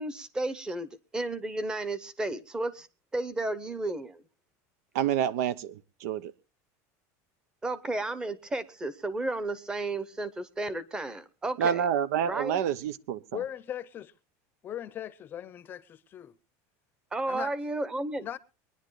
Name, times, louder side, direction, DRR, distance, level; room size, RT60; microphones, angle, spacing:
voice 1, 0.0-2.9 3.1-4.2 7.6-11.8 12.3-12.6 17.1-18.3, right 2 dB, 10° right, 0.8 m, -33 dB
voice 2, 4.9-6.3 11.6-13.2, right 9 dB, 90° right, 0.8 m, -28 dB
voice 3, 13.3-14.1 14.6-16.4 17.3-17.5 18.2-18.4, left 10 dB, 25° left, 0.7 m, -39 dB
23.5 x 10.5 x 3.2 m
cardioid pair, 170°, 8 cm